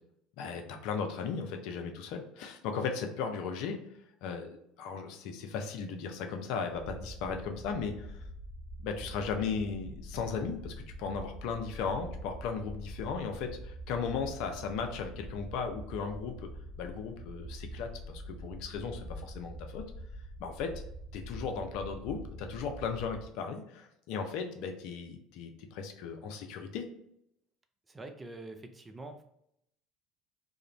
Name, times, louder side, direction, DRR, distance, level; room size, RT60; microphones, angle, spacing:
voice 1, 0.4-3.8 4.2-8.2 8.8-16.5 16.8-19.9 20.4-20.8 21.1-26.9, left 5 dB, 60° left, 5 dB, 0.3 m, -36 dB
sound 1, 6.7-23.2, right 1 dB, ahead, 0.9 m, -45 dB
voice 2, 27.9-29.2, right 2 dB, 20° right, 5 dB, 0.4 m, -45 dB
2.4 x 2.0 x 2.8 m, 0.76 s
figure-of-eight pair, 65°, 0 cm